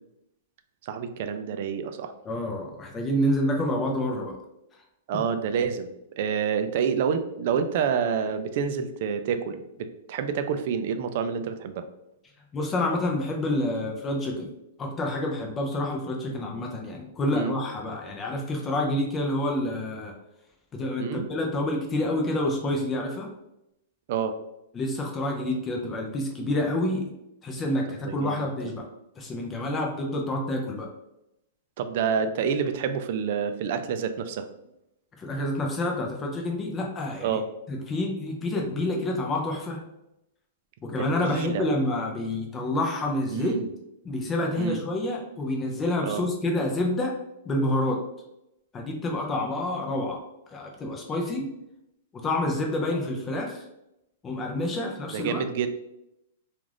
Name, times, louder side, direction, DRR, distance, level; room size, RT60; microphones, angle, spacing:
voice 1, 0.8-2.1 5.1-11.8 17.3-17.5 21.0-21.3 24.1-24.4 28.1-28.5 31.8-34.5 37.2-37.4 41.0-41.7 43.3-43.7 44.6-44.8 46.0-46.3 55.1-55.7, right 7 dB, 50° right, 9 dB, 0.3 m, -28 dB
voice 2, 2.2-4.4 5.1-5.2 12.5-14.5 14.8-20.1 20.7-23.3 24.7-27.1 27.4-28.9 29.2-30.9 35.2-37.4 37.7-39.8 40.8-43.5 44.0-47.1 47.5-48.0 48.7-50.2 50.5-51.5 52.2-53.6 54.2-55.4, left 1 dB, 20° left, 1 dB, 0.5 m, -28 dB
2.4 x 2.4 x 3.2 m, 0.85 s
hypercardioid pair, 145°, 0 cm